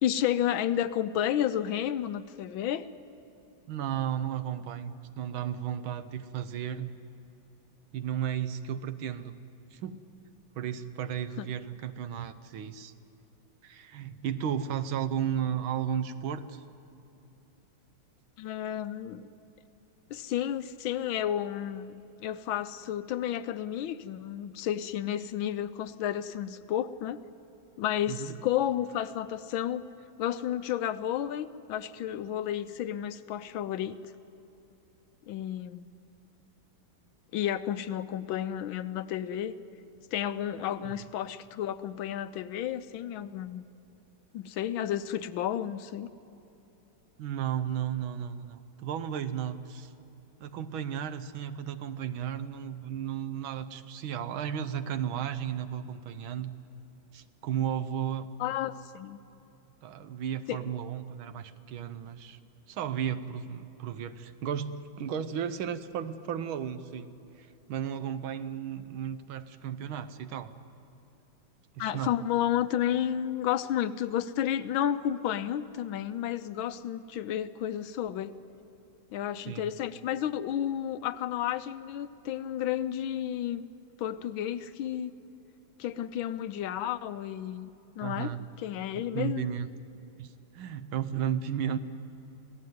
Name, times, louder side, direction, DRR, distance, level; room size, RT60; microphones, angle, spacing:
voice 1, 0.0-2.8 11.4-11.5 18.4-19.3 20.1-21.9 22.2-27.2 27.8-29.8 30.2-34.0 35.3-35.9 37.3-39.5 40.1-43.6 44.3-46.1 58.4-59.2 60.5-60.6 71.8-78.3 79.1-83.6 84.0-85.1 85.8-87.7 88.0-88.3 88.6-89.5, left 11 dB, 80° left, 13 dB, 1.5 m, -31 dB
voice 2, 3.7-6.9 7.9-9.3 9.7-10.1 10.6-12.9 13.6-16.6 28.1-28.4 40.8-41.0 47.2-49.9 50.4-56.5 57.1-58.3 59.8-62.4 62.7-70.5 71.8-72.2 79.5-79.7 88.0-88.4 88.9-89.7 90.2-91.8, right 9 dB, 85° right, 12 dB, 1.8 m, -34 dB
26.0 x 17.0 x 9.4 m, 2.9 s
omnidirectional pair, 2.2 m